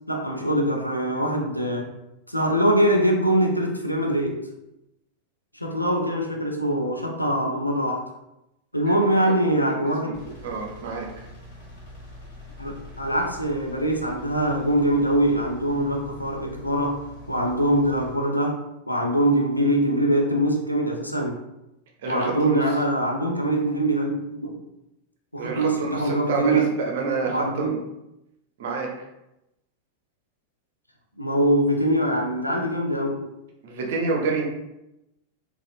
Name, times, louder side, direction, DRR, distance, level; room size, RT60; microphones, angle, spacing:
voice 1, 0.1-1.9 2.3-4.4 5.5-8.0 8.7-10.2 12.6-21.4 22.1-24.5 25.3-26.7 27.2-27.8 31.2-33.2, right 1 dB, 85° left, 1 dB, 0.4 m, -23 dB
voice 2, 8.9-9.3 9.7-10.2 10.4-11.3 22.0-22.6 25.4-27.8 28.6-28.9 33.6-34.4, right 4 dB, 55° right, 0 dB, 0.7 m, -28 dB
Engine, 10.1-18.2, left 1 dB, 50° left, 1.4 m, -44 dB
4.1 x 2.4 x 2.5 m, 0.90 s
figure-of-eight pair, 90°, 0 cm